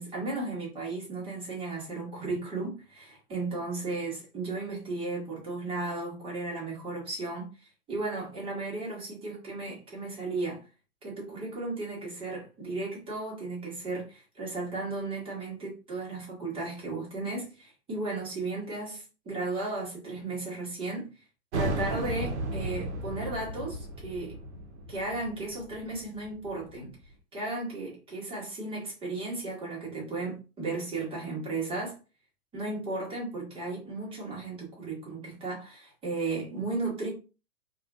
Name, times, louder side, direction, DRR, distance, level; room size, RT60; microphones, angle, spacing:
voice 1, 0.0-7.5 7.9-10.6 11.0-21.1 21.5-24.4 24.9-26.9 27.3-32.0 32.5-37.1, right 3 dB, 10° right, 0.9 m, -35 dB
sound 1, 21.5-26.8, right 2 dB, 45° right, 0.6 m, -35 dB
2.3 x 2.3 x 2.3 m
figure-of-eight pair, 115°, 47 cm